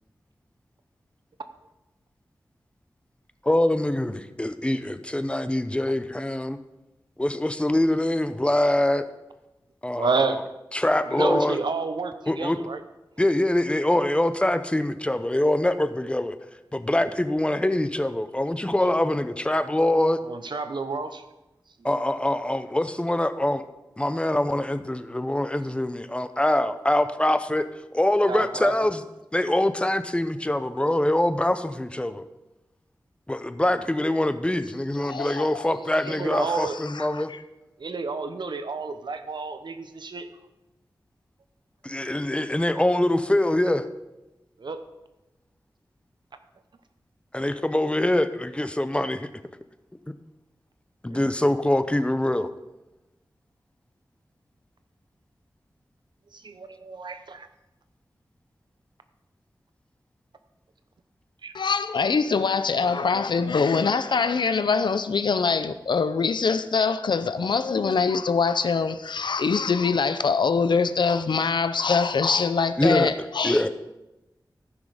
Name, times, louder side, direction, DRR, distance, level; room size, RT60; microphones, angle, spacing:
voice 1, 3.4-6.6 7.2-9.0 9.8-10.1 10.7-11.6 12.3-12.6 13.2-16.4 16.7-20.2 21.8-23.6 24.0-27.7 27.9-29.0 29.3-32.2 33.3-37.3 41.8-43.8 47.3-49.3 51.0-52.5 72.8-73.1 73.4-73.7, left 1 dB, 15° left, 0.6 m, -24 dB
voice 2, 9.9-10.4 11.1-12.8 20.2-21.2 28.3-28.7 36.1-36.8 37.8-40.3 44.6-44.8 56.3-57.5 61.4-61.5, right 4 dB, 75° right, 0.9 m, -30 dB
voice 3, 35.0-35.5 36.3-37.4 61.5-73.7, left 5 dB, 75° left, 0.6 m, -24 dB
14.5 x 6.2 x 5.0 m
wide cardioid pair, 80°, 8 cm